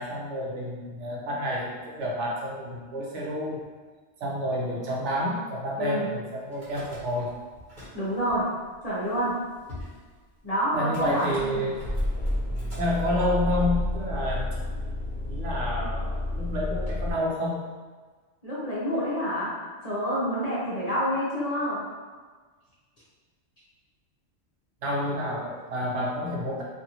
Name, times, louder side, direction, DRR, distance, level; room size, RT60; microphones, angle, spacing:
voice 1, 0.0-1.7 2.0-3.6 4.2-7.3 10.7-11.8 12.8-14.5 15.3-17.6 24.8-26.6, left 1 dB, 80° right, -3 dB, 1.0 m, -29 dB
voice 2, 5.8-6.1 7.9-8.5 8.8-9.4 10.4-11.7 18.4-19.5 19.8-21.9, equal, 40° left, -9 dB, 0.7 m, -28 dB
Car / Engine starting / Idling, 6.5-7.3 7.6-8.3 9.0-9.1 9.3-9.4 9.7-10.0 10.9-17.1, left 1 dB, 45° right, 1.2 m, -31 dB
2.6 x 2.5 x 2.8 m, 1.4 s
omnidirectional pair, 1.2 m